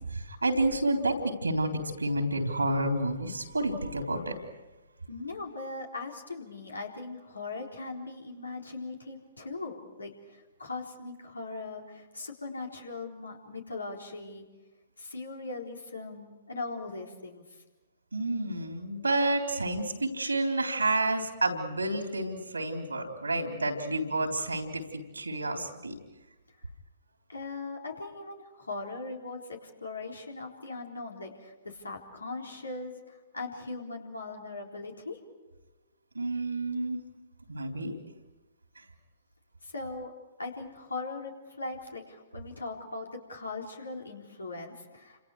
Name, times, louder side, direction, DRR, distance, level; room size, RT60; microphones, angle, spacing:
voice 1, 0.0-1.7 2.0-4.4 18.1-26.0 36.1-37.0 37.5-38.0 38.8-38.9, right 2 dB, 85° right, 4 dB, 3.5 m, -30 dB
voice 2, 5.1-14.5 15.0-17.4 27.3-35.2 39.6-40.1 40.4-45.2, left 3 dB, 80° left, 1 dB, 3.9 m, -39 dB
29.5 x 26.5 x 4.8 m, 1.1 s
figure-of-eight pair, 115°, 0 cm